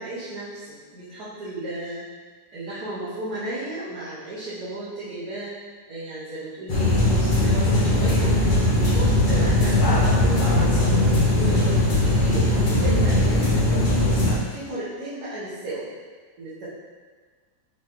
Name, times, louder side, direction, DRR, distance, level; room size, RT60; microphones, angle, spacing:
voice 1, 0.0-2.0 2.5-5.5 5.9-8.3 8.8-10.7 11.3-11.7 12.0-14.1 14.5-15.9 16.4-16.7, right 1 dB, 65° right, -11 dB, 1.4 m, -34 dB
sound 1, 6.7-14.3, left 1 dB, 50° left, 0.5 m, -19 dB
4.9 x 3.3 x 3.0 m, 1.5 s
omnidirectional pair, 1.8 m